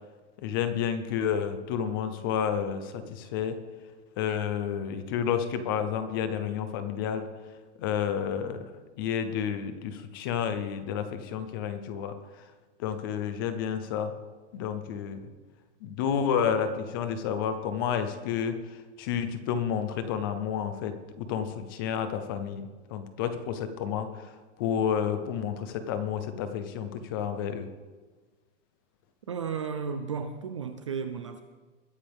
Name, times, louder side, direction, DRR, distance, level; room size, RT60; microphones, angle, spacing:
voice 1, 0.4-3.6 4.2-7.3 7.8-8.7 9.0-12.2 12.8-14.1 14.5-15.2 15.8-18.6 19.0-22.6 22.9-24.2 24.6-27.7, left 8 dB, 20° left, 10 dB, 0.6 m, -30 dB
voice 2, 29.3-31.4, right 6 dB, 30° right, 9 dB, 0.4 m, -34 dB
21.5 x 9.7 x 3.5 m, 1.3 s
supercardioid pair, 175°, 35 cm